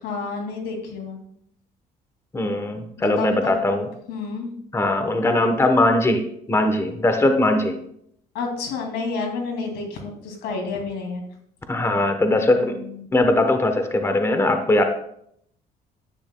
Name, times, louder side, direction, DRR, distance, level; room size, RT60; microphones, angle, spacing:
voice 1, 0.0-1.2 3.0-3.5 4.1-4.5 8.3-11.2 12.7-13.1, left 4 dB, 90° left, 3 dB, 2.4 m, -30 dB
voice 2, 2.3-3.9 4.7-7.8 11.7-12.8 13.1-14.9, left 2 dB, 15° left, 6 dB, 0.9 m, -20 dB
10.5 x 8.8 x 2.2 m, 0.70 s
cardioid pair, 110°, 17 cm